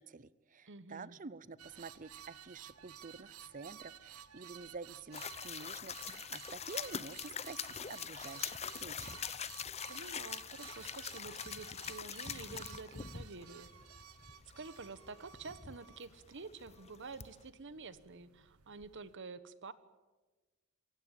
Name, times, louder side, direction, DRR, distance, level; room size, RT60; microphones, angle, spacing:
voice 1, 0.0-9.2, right 4 dB, 40° right, 19 dB, 0.7 m, -49 dB
voice 2, 0.7-1.2 9.9-13.7 14.6-19.7, right 4 dB, 60° right, 14 dB, 1.2 m, -49 dB
sound 1, 1.6-19.2, right 9 dB, 80° right, 0.9 m, -55 dB
sound 2, 5.1-17.5, left 7 dB, 30° left, 0.7 m, -44 dB
27.0 x 16.0 x 8.9 m, 1.2 s
head